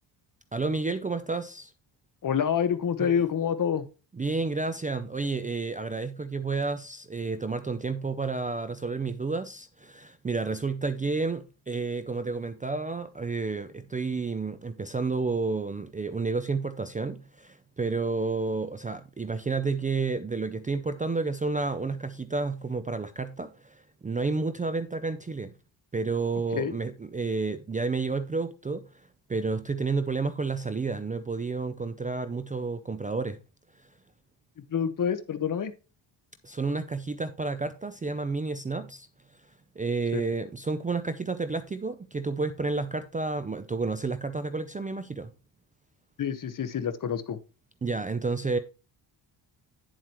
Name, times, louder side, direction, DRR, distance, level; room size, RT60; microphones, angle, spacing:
voice 1, 0.5-1.7 3.0-3.1 4.1-25.5 25.9-33.4 36.4-39.1 39.8-45.3 47.8-48.6, right 4 dB, 15° right, 0.5 m, -30 dB
voice 2, 2.2-3.9 26.5-26.7 34.7-35.7 40.1-40.2 46.2-47.4, left 8 dB, 40° left, 1.1 m, -27 dB
9.5 x 7.5 x 3.0 m
cardioid pair, 125°, 47 cm